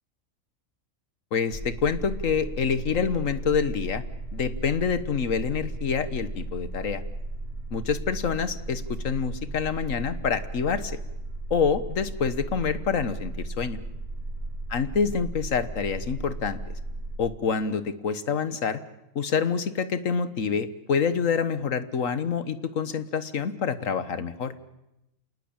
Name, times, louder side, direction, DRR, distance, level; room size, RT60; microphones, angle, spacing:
voice 1, 1.3-4.0 4.3-7.0 7.7-11.0 11.5-13.8 14.7-16.6 17.2-18.8 19.1-24.5, left 6 dB, 75° left, 13 dB, 1.6 m, -27 dB
sound 1, 1.5-17.2, right 2 dB, 45° right, 3.7 m, -35 dB
28.0 x 19.0 x 8.9 m, 0.89 s
omnidirectional pair, 1.4 m